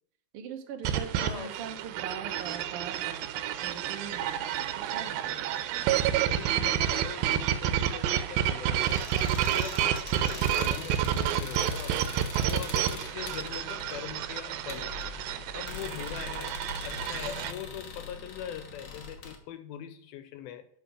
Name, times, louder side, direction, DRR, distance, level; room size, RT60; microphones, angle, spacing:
voice 1, 0.3-3.3 3.6-5.6, right 6 dB, 70° right, 5 dB, 1.3 m, -42 dB
sound 1, 0.8-17.5, right 10 dB, 90° right, 2.5 m, -30 dB
voice 2, 1.2-1.5 6.2-9.0 9.5-12.0 12.4-15.0 15.5-16.5 16.8-20.7, left 9 dB, 85° left, 11 dB, 2.7 m, -41 dB
sound 2, 8.7-19.4, left 5 dB, 65° left, 1.3 m, -42 dB
10.0 x 5.1 x 5.0 m, 0.65 s
omnidirectional pair, 4.2 m